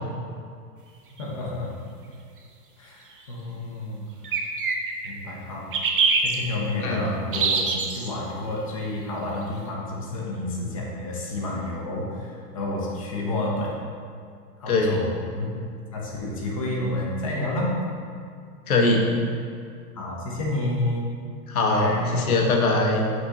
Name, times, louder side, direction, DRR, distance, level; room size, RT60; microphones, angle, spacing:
voice 1, 1.2-1.7 2.8-4.1 5.0-5.7 6.2-13.7 14.6-15.1 15.3-15.5 15.9-17.7 20.0-21.0 21.7-22.2, left 2 dB, 20° left, -3 dB, 0.7 m, -30 dB
sound 1, 1.2-1.3 4.2-5.1 5.7-6.3 7.3-8.1, right 5 dB, 35° right, 0.5 m, -23 dB
voice 2, 14.7-15.0 18.7-19.1 21.5-23.1, left 2 dB, 65° left, 1 dB, 1.3 m, -21 dB
8.1 x 6.2 x 2.7 m, 2.3 s
hypercardioid pair, 170°, 46 cm